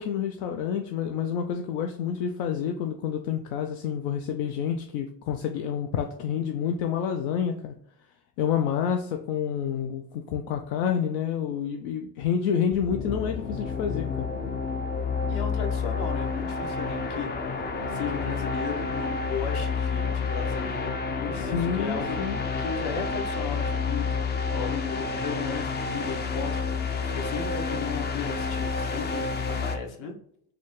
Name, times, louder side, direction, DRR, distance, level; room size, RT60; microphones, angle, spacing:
voice 1, 0.0-7.7 8.4-14.3 21.4-22.4, left 8 dB, 75° left, 4 dB, 0.6 m, -28 dB
sound 1, 12.7-29.8, left 4 dB, 25° left, 0.3 m, -29 dB
voice 2, 15.2-17.3 17.9-24.2 24.5-26.6 27.1-29.3 29.6-30.1, left 6 dB, 55° left, 3 dB, 1.0 m, -35 dB
4.1 x 2.2 x 3.2 m, 0.69 s
supercardioid pair, 90°, 46 cm